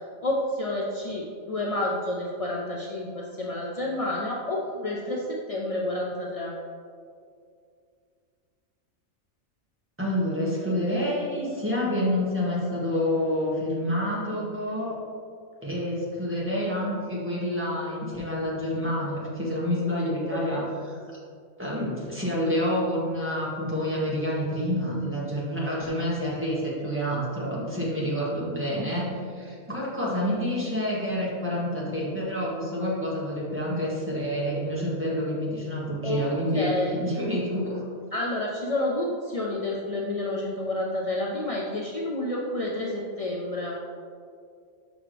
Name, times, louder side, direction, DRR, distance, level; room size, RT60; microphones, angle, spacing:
voice 1, 0.2-6.5 20.3-20.6 36.0-36.2 36.5-37.0 38.1-43.8, left 1 dB, 55° left, -2 dB, 0.4 m, -29 dB
voice 2, 10.0-15.0 15.6-21.0 21.6-36.7 37.0-37.8, equal, 10° right, -7 dB, 1.6 m, -28 dB
6.2 x 6.0 x 3.3 m, 2.3 s
omnidirectional pair, 1.4 m